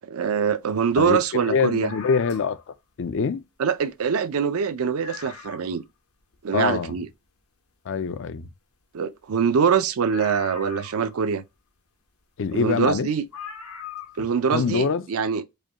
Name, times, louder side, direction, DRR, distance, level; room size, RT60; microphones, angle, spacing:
voice 1, 0.0-1.9 3.6-5.8 6.4-7.1 8.9-11.4 12.5-13.2 14.2-15.4, right 6 dB, 70° right, 0.4 m, -24 dB
voice 2, 1.0-3.4 6.5-6.9 7.9-8.5 12.4-13.1 14.5-15.1, left 5 dB, 60° left, 0.4 m, -25 dB
sound 1, 1.8-2.7 3.8-3.9 4.2-4.3 4.7-4.8 5.0-5.8 6.3-6.4 10.1-11.4 12.5-12.6 13.3-14.3 14.6-14.7, left 6 dB, 80° left, 0.9 m, -40 dB
4.9 x 2.2 x 2.8 m
head